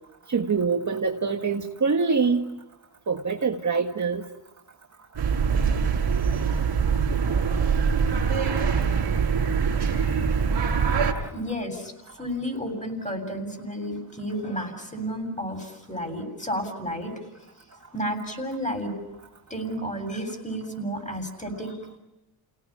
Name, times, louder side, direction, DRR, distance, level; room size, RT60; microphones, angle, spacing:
voice 1, 0.3-2.5 3.1-4.3, right 5 dB, 35° right, 3 dB, 1.7 m, -24 dB
sound 1, 5.2-11.1, right 6 dB, 55° right, 4.9 m, -23 dB
voice 2, 11.3-11.9 12.2-17.2 17.9-18.9 19.5-22.0, equal, 15° left, 5 dB, 7.6 m, -32 dB
29.0 x 18.5 x 8.7 m, 1.0 s
cardioid pair, 70°, 47 cm